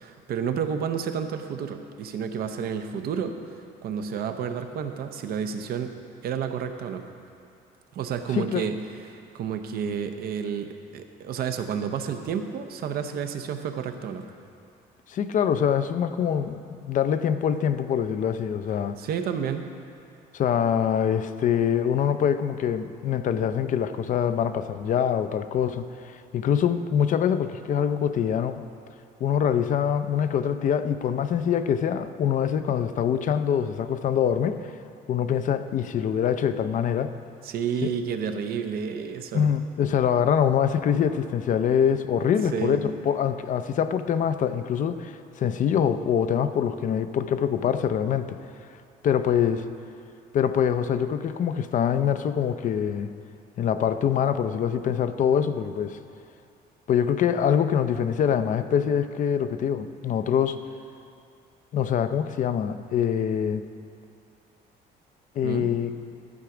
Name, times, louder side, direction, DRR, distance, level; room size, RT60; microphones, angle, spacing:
voice 1, 0.0-7.0 7.9-8.8 9.0-14.2 19.0-19.7 37.4-39.5 42.5-42.8 65.4-65.7, right 7 dB, 65° right, 7 dB, 0.8 m, -30 dB
voice 2, 8.3-8.6 15.1-19.0 20.3-28.7 29.2-34.7 35.1-37.1 37.8-37.9 39.3-48.4 49.0-49.7 50.3-53.1 53.6-56.0 56.9-60.6 61.7-63.6 65.4-65.9, left 8 dB, 50° left, 10 dB, 0.5 m, -24 dB
12.0 x 4.8 x 7.0 m, 2.5 s
cardioid pair, 110°, 17 cm